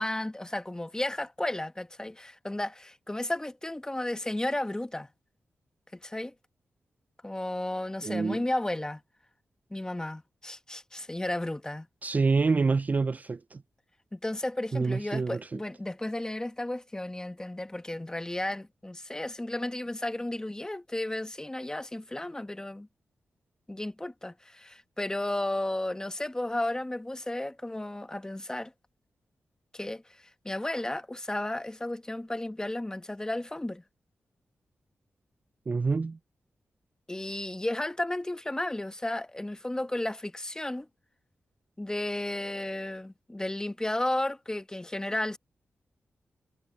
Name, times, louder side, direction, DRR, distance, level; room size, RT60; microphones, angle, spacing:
voice 1, 0.0-5.1 5.9-6.3 7.2-9.0 9.7-11.9 14.1-22.9 23.7-28.7 29.7-33.8 37.1-40.9 41.8-45.4, left 1 dB, 15° left, 1.2 m, -33 dB
voice 2, 8.0-8.4 12.0-13.6 14.7-15.6 35.7-36.2, right 4 dB, 35° right, 0.3 m, -27 dB
cardioid pair, 75°, 5 cm